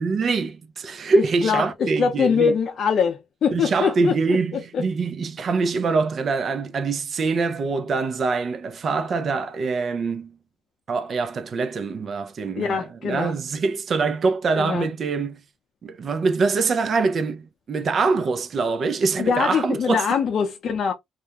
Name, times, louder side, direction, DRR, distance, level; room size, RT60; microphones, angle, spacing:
voice 1, 0.0-2.5 3.5-10.3 10.9-15.4 15.8-20.0, right 4 dB, 50° right, 0.5 m, -24 dB
voice 2, 1.1-4.8 12.5-13.4 14.5-14.9 19.2-20.9, left 6 dB, 60° left, 0.5 m, -23 dB
2.4 x 2.2 x 2.8 m
cardioid pair, 90°, 0 cm